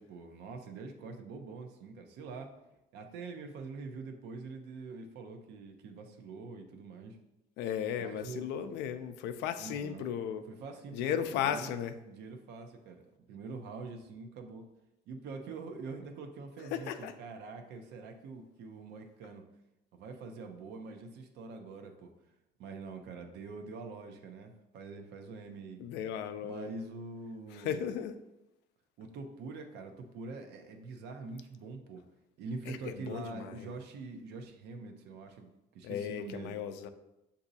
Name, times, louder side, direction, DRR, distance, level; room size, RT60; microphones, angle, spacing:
voice 1, 0.0-2.5 2.9-7.2 8.0-8.5 9.6-10.1 10.5-11.8 12.0-14.7 15.1-19.5 19.9-22.1 22.6-25.8 26.4-27.8 29.0-32.0 32.4-36.6, right 4 dB, 80° right, 5 dB, 0.6 m, -45 dB
voice 2, 7.6-10.4 10.9-11.9 16.7-17.1 25.8-26.7 27.5-28.2 32.7-33.7 35.8-36.9, left 9 dB, 85° left, 9 dB, 0.4 m, -35 dB
6.9 x 2.7 x 2.7 m, 0.91 s
cardioid pair, 110°, 17 cm